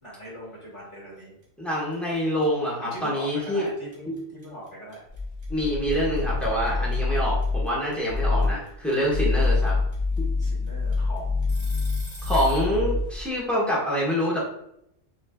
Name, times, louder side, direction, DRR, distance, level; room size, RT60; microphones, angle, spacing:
voice 1, 0.0-1.4 2.8-5.0 10.4-11.5, equal, 20° left, -6 dB, 1.9 m, -40 dB
sound 1, 1.4-1.7 1.9-12.7, right 1 dB, 30° right, 1.7 m, -45 dB
voice 2, 1.6-3.7 4.1-4.2 5.5-9.7 12.2-14.4, equal, ahead, -6 dB, 1.4 m, -26 dB
sound 2, 5.1-7.7 8.1-8.6 9.0-13.3, left 3 dB, 80° left, 1.4 m, -26 dB
6.5 x 3.1 x 2.4 m, 0.76 s
omnidirectional pair, 1.3 m